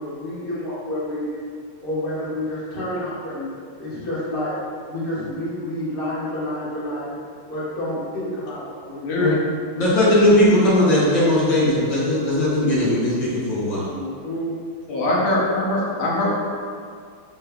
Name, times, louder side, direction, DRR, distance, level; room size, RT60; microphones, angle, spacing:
voice 1, 0.0-1.5 1.8-3.5 3.8-4.5 4.9-7.2 7.5-9.3 13.9-14.6 14.9-15.1, left 1 dB, 30° left, -10 dB, 1.3 m, -29 dB
voice 2, 9.0-9.4 14.9-16.3, left 2 dB, 85° left, -5 dB, 1.7 m, -22 dB
voice 3, 9.7-13.9, left 1 dB, 65° left, -8 dB, 1.7 m, -18 dB
5.2 x 4.0 x 2.2 m, 2.1 s
omnidirectional pair, 2.3 m